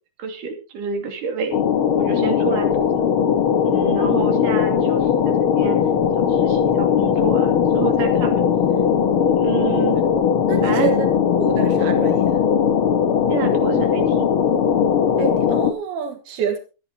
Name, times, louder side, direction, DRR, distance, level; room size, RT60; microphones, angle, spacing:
voice 1, 0.2-1.6 2.0-2.9 3.6-5.8 6.3-8.4 9.4-10.0 10.6-10.9 13.3-14.3, right 5 dB, 60° right, 4 dB, 4.1 m, -28 dB
sound 1, 1.5-15.7, left 8 dB, 75° left, 1.2 m, -19 dB
voice 2, 10.5-11.1 11.4-12.3 15.2-16.6, right 9 dB, 80° right, 4 dB, 3.4 m, -27 dB
25.0 x 10.5 x 2.9 m, 0.32 s
omnidirectional pair, 4.4 m